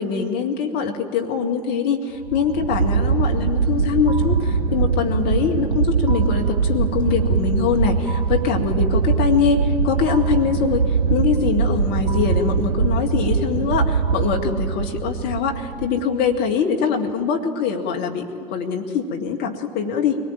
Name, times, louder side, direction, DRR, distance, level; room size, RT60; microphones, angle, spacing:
voice 1, 0.0-10.8 11.1-20.2, left 6 dB, 55° left, 3 dB, 2.1 m, -23 dB
sound 1, 2.2-16.4, right 5 dB, 80° right, 0.6 m, -22 dB
23.5 x 19.0 x 9.0 m, 2.2 s
figure-of-eight pair, 65°, 20 cm